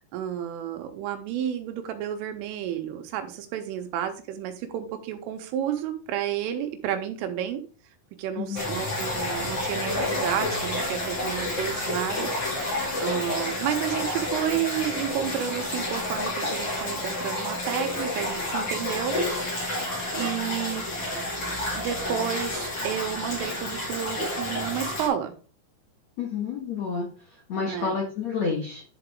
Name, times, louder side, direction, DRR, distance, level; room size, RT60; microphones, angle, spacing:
voice 1, 0.1-7.6 8.2-12.7 13.0-19.2 20.1-20.9 21.7-25.3 27.7-27.9, right 10 dB, 85° right, 6 dB, 3.6 m, -31 dB
sound 1, 8.6-25.1, left 1 dB, 40° left, 2.4 m, -30 dB
voice 2, 26.2-27.1 27.5-28.8, left 5 dB, 90° left, -1 dB, 1.5 m, -29 dB
11.0 x 4.9 x 3.5 m, 0.37 s
omnidirectional pair, 5.7 m